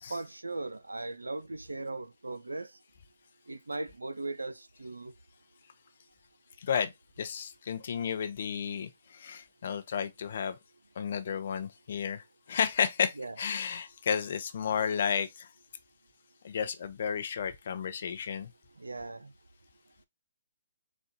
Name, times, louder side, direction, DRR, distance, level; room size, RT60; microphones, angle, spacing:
voice 1, 0.1-2.7 3.5-5.1 13.2-13.4 18.8-19.3, right 2 dB, 90° right, 0.4 m, -38 dB
voice 2, 6.6-6.9 7.2-10.6 11.0-15.5 16.4-18.5, left 7 dB, 55° left, 0.6 m, -32 dB
4.1 x 2.2 x 4.2 m
figure-of-eight pair, 135°, 0 cm